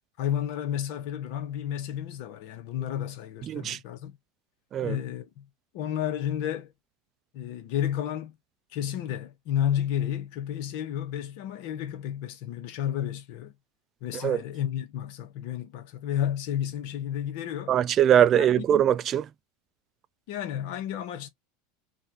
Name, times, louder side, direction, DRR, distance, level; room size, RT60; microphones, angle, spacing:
voice 1, 0.2-4.2 4.8-5.5 5.7-6.7 7.3-8.3 8.7-13.5 14.0-17.8 18.4-18.7 20.3-21.3, left 10 dB, 60° left, 1.1 m, -31 dB
voice 2, 3.5-3.8 4.7-5.0 14.2-14.4 17.7-19.3, right 10 dB, 40° right, 0.4 m, -22 dB
3.3 x 2.6 x 2.8 m
hypercardioid pair, 95°, 0 cm